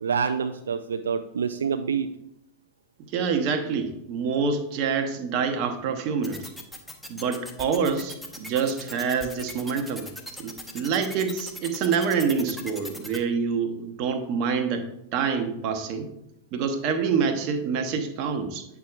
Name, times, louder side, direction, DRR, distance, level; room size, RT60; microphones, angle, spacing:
voice 1, 0.0-2.1, right 6 dB, 70° right, 7 dB, 0.3 m, -27 dB
voice 2, 3.1-6.5 7.1-10.1 10.4-16.1 16.5-18.6, right 6 dB, 40° right, 6 dB, 0.8 m, -26 dB
sound 1, 6.2-13.2, left 1 dB, 5° left, 1.0 m, -38 dB
9.2 x 5.9 x 2.4 m, 0.83 s
figure-of-eight pair, 90°, 0 cm